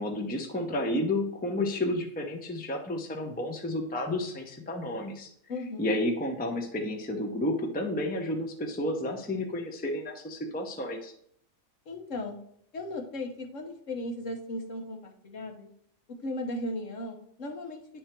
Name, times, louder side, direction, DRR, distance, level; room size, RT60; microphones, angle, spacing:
voice 1, 0.0-5.3 5.8-11.1, left 1 dB, 10° left, 3 dB, 0.6 m, -31 dB
voice 2, 5.5-6.0 11.9-12.4 12.7-15.7 16.1-17.8, left 1 dB, 60° left, 3 dB, 1.4 m, -36 dB
10.0 x 3.5 x 4.4 m, 0.67 s
omnidirectional pair, 1.5 m